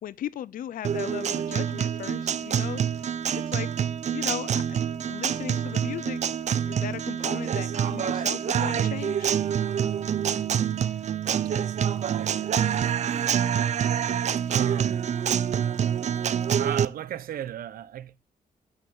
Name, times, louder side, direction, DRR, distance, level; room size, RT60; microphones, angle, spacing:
voice 1, 0.0-2.8 3.3-3.7 4.1-9.3, left 11 dB, 75° left, 0.6 m, -37 dB
Guitar, 0.8-16.9, right 8 dB, 50° right, 0.6 m, -26 dB
voice 2, 12.7-13.5 14.5-15.1 16.6-18.2, right 11 dB, 90° right, 0.8 m, -34 dB
9.7 x 6.5 x 8.7 m
wide cardioid pair, 135°, 15 cm